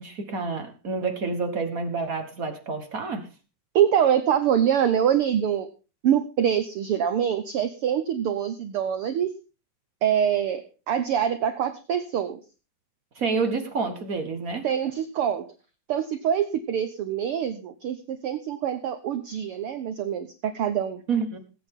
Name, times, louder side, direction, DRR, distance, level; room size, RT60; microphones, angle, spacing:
voice 1, 0.0-3.3 13.1-14.6 21.1-21.4, right 4 dB, 55° right, 6 dB, 0.9 m, -28 dB
voice 2, 3.7-5.7 6.0-9.3 10.0-12.4 14.6-15.5 15.9-21.0, right 9 dB, 75° right, 10 dB, 1.3 m, -25 dB
20.0 x 8.7 x 3.7 m, 0.32 s
omnidirectional pair, 3.6 m